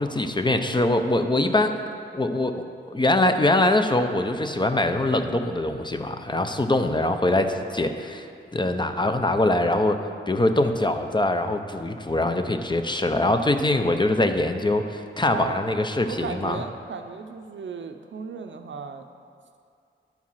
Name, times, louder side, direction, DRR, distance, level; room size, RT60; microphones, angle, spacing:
voice 1, 0.0-1.7 2.1-8.3 8.5-16.6, left 2 dB, 20° left, 6 dB, 0.6 m, -23 dB
voice 2, 15.2-15.6 16.1-19.0, right 6 dB, 70° right, 6 dB, 0.6 m, -35 dB
10.5 x 4.8 x 5.6 m, 2.4 s
cardioid pair, 65°, 20 cm